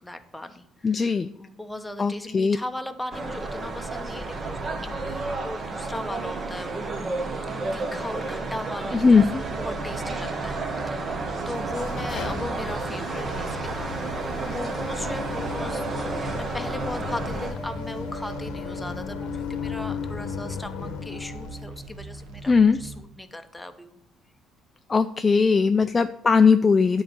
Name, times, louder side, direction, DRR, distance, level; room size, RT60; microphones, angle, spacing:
voice 1, 0.0-6.9 7.5-24.0 25.8-26.1, left 1 dB, 5° left, 7 dB, 0.8 m, -38 dB
voice 2, 0.8-1.3 2.0-2.6 8.9-9.4 22.5-22.8 24.9-27.0, left 5 dB, 25° left, 9 dB, 0.3 m, -19 dB
sound 1, 3.1-17.5, right 3 dB, 35° right, 1.1 m, -32 dB
sound 2, 9.3-23.0, right 3 dB, 85° right, 1.2 m, -39 dB
sound 3, 11.4-21.7, left 7 dB, 75° left, 0.9 m, -36 dB
10.0 x 4.0 x 6.8 m, 0.75 s
cardioid pair, 115°, 0 cm